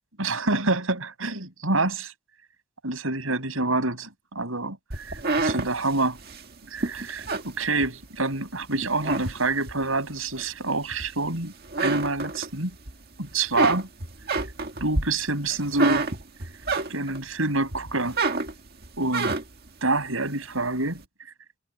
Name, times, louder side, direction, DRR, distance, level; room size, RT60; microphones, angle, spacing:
voice 1, 0.2-2.1 2.8-6.2 6.7-12.7 13.2-13.9 14.8-16.1 16.9-18.2 19.0-19.3 19.8-21.0, right 2 dB, 90° right, 6.2 m, -27 dB
sound 1, 4.9-8.3 8.7-9.8 10.4-11.4 11.6-12.9 13.2-17.3 17.7-19.7, right 3 dB, 50° right, 1.9 m, -28 dB
head